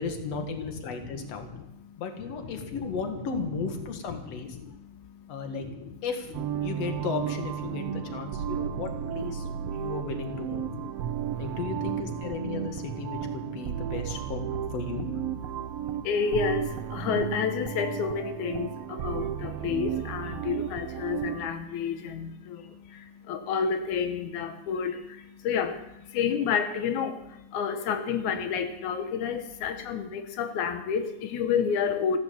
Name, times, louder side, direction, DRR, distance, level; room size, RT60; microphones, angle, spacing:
voice 1, 0.0-1.5 2.0-4.6 5.3-5.7 6.0-6.3 6.6-10.7 11.4-15.1, left 4 dB, 60° left, 5 dB, 2.8 m, -35 dB
voice 2, 1.5-2.0 4.6-5.9 7.7-7.8 8.2-8.8 9.4-9.9 10.6-11.4 15.5-32.2, left 6 dB, 90° left, 7 dB, 2.4 m, -31 dB
sound 1, 6.3-21.5, right 9 dB, 75° right, 1.6 m, -34 dB
15.5 x 13.0 x 7.2 m, 0.88 s
omnidirectional pair, 3.3 m